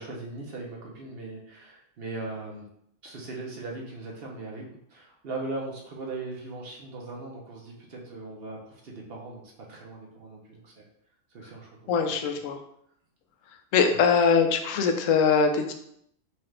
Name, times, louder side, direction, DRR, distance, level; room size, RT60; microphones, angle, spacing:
voice 1, 0.0-2.7 3.0-9.4 9.7-10.9 11.3-12.0 13.9-14.0, right 3 dB, 50° right, -1 dB, 1.0 m, -39 dB
voice 2, 11.9-12.6 13.7-15.7, left 6 dB, 80° left, 6 dB, 0.9 m, -22 dB
4.3 x 2.5 x 3.2 m, 0.72 s
omnidirectional pair, 1.4 m